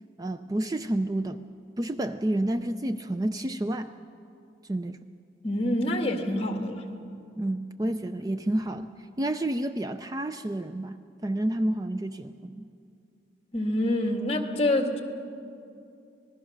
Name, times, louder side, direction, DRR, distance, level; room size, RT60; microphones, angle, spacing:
voice 1, 0.2-1.4 1.8-3.9 4.6-5.0 7.4-12.7, right 1 dB, 20° right, 10 dB, 0.5 m, -30 dB
voice 2, 5.4-6.8 13.5-15.0, left 1 dB, 35° left, 5 dB, 1.8 m, -26 dB
26.5 x 20.0 x 6.6 m, 2.6 s
head